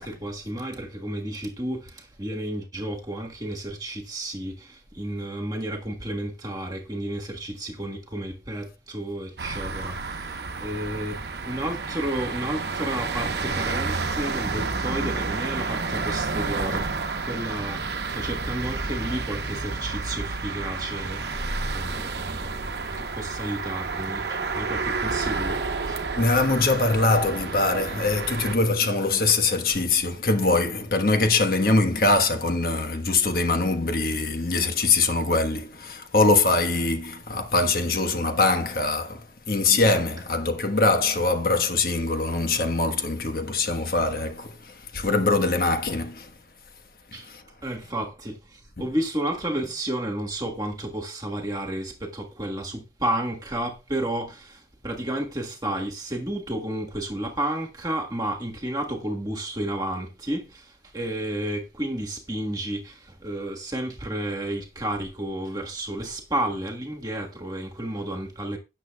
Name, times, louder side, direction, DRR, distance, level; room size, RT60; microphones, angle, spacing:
voice 1, 0.0-26.1 47.1-47.3 47.6-68.6, right 1 dB, 20° right, 1.5 m, -32 dB
sound 1, 9.4-28.6, right 4 dB, 70° right, 1.0 m, -30 dB
voice 2, 26.1-46.3 47.1-47.4 48.8-49.0, left 3 dB, 55° left, 1.3 m, -23 dB
17.0 x 6.7 x 2.3 m
head